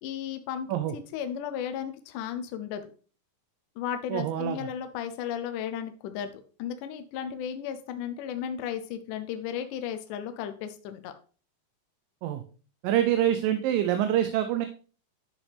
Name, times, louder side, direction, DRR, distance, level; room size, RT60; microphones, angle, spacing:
voice 1, 0.0-0.7 0.9-2.8 3.8-11.1, left 9 dB, 75° left, 7 dB, 2.1 m, -34 dB
voice 2, 4.1-4.7 12.2-12.4 12.8-14.7, right 11 dB, 90° right, 8 dB, 2.4 m, -26 dB
10.5 x 6.1 x 3.3 m, 0.39 s
omnidirectional pair, 3.9 m